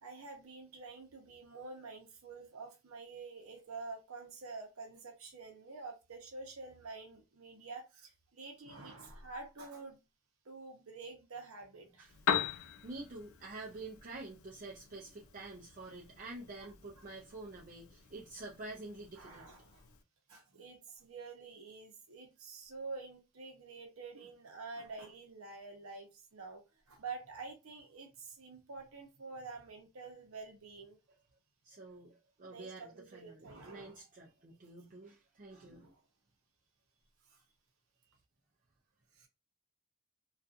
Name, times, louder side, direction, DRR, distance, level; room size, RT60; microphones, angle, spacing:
voice 1, 0.0-10.0 10.4-12.2 17.0-17.1 19.2-19.9 20.3-31.0 32.5-34.0 35.6-36.0 37.3-37.4 39.1-39.3, right 4 dB, 85° right, 0.7 m, -48 dB
Piano, 12.0-20.0, left 8 dB, 70° left, 0.4 m, -42 dB
voice 2, 12.8-19.5 31.6-35.9, right 2 dB, 40° right, 0.4 m, -48 dB
2.6 x 2.3 x 2.4 m
head